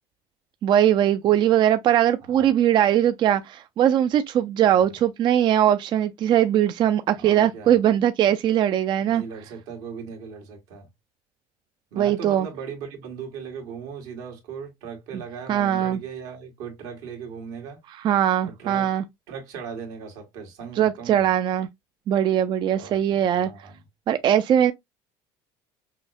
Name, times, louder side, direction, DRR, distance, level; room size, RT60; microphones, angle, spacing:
voice 1, 0.6-9.2 11.9-12.5 15.5-16.0 18.0-19.0 20.8-21.7 22.1-23.5 24.1-24.7, right 10 dB, 40° right, 0.3 m, -20 dB
voice 2, 7.1-7.8 9.0-10.9 11.9-17.8 18.4-18.9 19.3-21.3 22.7-23.8, right 6 dB, 85° right, 1.6 m, -38 dB
5.6 x 2.1 x 2.5 m
cardioid pair, 110°, 12 cm